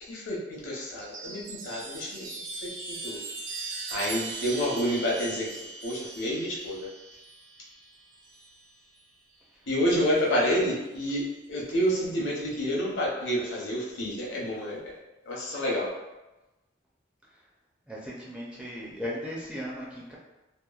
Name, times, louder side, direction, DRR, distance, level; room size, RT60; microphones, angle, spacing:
voice 1, 0.0-2.2 2.6-3.2 3.9-6.9 9.7-14.9 15.2-15.9, equal, 75° left, -4 dB, 0.7 m, -29 dB
Chime, 0.9-8.7 9.9-10.6, right 3 dB, 80° right, 0.5 m, -40 dB
voice 2, 17.9-20.1, equal, 5° right, -6 dB, 0.4 m, -37 dB
2.9 x 2.2 x 2.3 m, 1.0 s
head